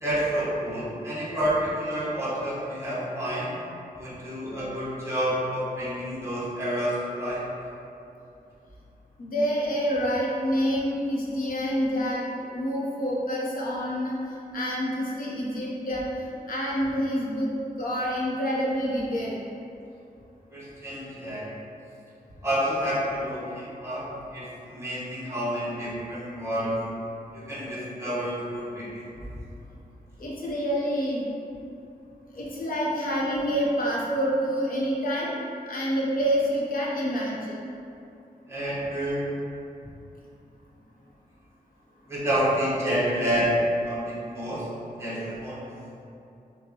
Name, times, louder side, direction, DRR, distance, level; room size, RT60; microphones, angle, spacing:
voice 1, 0.0-3.6 4.0-7.4 20.5-21.5 22.4-26.8 27.3-29.0 38.5-39.3 42.1-43.6 43.8-44.7 45.0-45.7, equal, 15° right, -9 dB, 1.0 m, -29 dB
voice 2, 9.2-14.2 14.5-17.5 17.8-19.4 30.2-31.2 32.3-35.4 35.7-37.6, equal, 65° left, -5 dB, 0.8 m, -27 dB
5.9 x 2.2 x 2.9 m, 2.7 s
wide cardioid pair, 155°, 16 cm